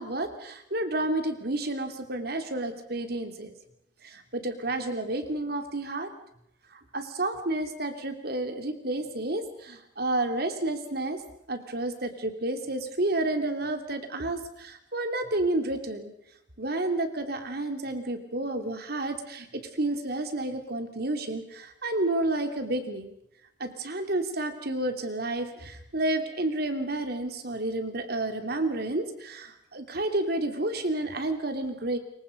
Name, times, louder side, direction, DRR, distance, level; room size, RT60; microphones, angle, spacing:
voice 1, 0.0-3.5 4.0-6.1 6.7-11.2 11.5-16.1 16.6-23.1 23.6-32.0, right 2 dB, 60° right, 7 dB, 3.0 m, -30 dB
26.5 x 23.5 x 5.3 m, 0.77 s
head